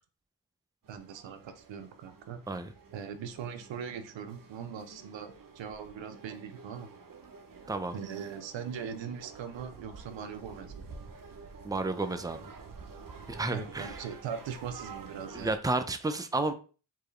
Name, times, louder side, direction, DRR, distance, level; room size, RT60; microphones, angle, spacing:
sound 1, 0.8-15.6, right 5 dB, 50° right, 0.8 m, -49 dB
voice 1, 0.9-2.4 2.9-6.9 7.9-10.9 13.5-15.6, right 7 dB, 85° right, 10 dB, 0.6 m, -40 dB
voice 2, 11.6-12.5 13.3-14.0 15.3-16.5, right 2 dB, 10° right, 9 dB, 0.6 m, -31 dB
4.6 x 2.9 x 3.2 m, 0.36 s
cardioid pair, 60°, 44 cm